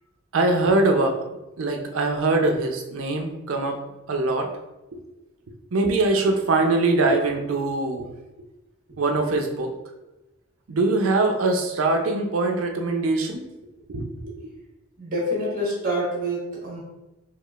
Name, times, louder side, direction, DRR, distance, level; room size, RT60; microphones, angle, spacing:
voice 1, 0.3-1.2 1.6-3.8 4.1-4.5 5.5-8.1 9.0-9.7 10.7-13.5 13.9-14.5, right 2 dB, 80° right, 4 dB, 0.5 m, -23 dB
voice 2, 15.0-16.8, equal, 40° right, -4 dB, 1.2 m, -27 dB
4.7 x 2.4 x 2.4 m, 1.0 s
head